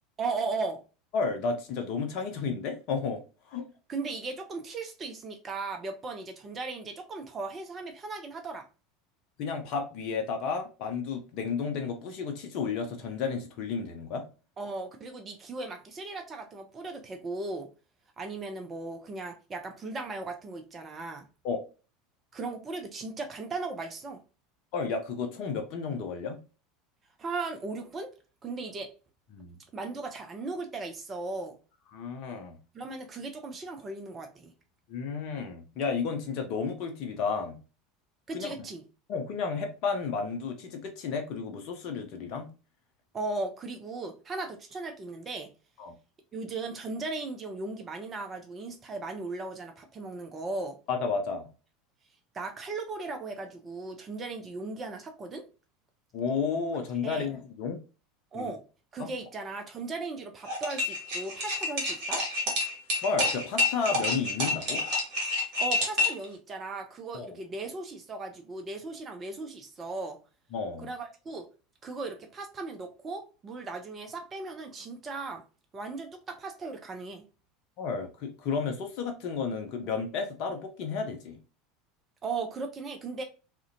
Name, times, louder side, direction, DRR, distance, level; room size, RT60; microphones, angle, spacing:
voice 1, 0.2-0.8 3.9-8.7 14.6-17.7 18.2-21.2 22.3-24.2 27.2-28.1 28.4-28.9 29.7-31.6 32.7-34.5 38.3-38.8 43.1-45.5 46.3-50.8 52.3-55.4 57.0-57.3 58.3-58.6 58.9-62.2 65.6-70.2 70.8-71.5 71.8-75.4 75.7-77.2 82.2-83.2, right 3 dB, 30° right, 0.5 m, -37 dB
voice 2, 1.1-3.2 3.5-3.7 9.4-14.2 21.4-21.6 24.7-26.4 29.3-29.6 31.9-32.6 34.9-37.6 38.3-38.5 39.1-42.5 45.8-45.9 50.9-51.5 56.1-57.8 58.3-58.5 59.0-59.1 63.0-64.8 67.1-67.4 70.5-70.9 77.8-81.4, left 5 dB, 50° left, 0.5 m, -32 dB
sound 1, 60.4-66.2, left 2 dB, 50° right, 1.1 m, -28 dB
2.4 x 2.1 x 2.6 m
figure-of-eight pair, 75°, 0 cm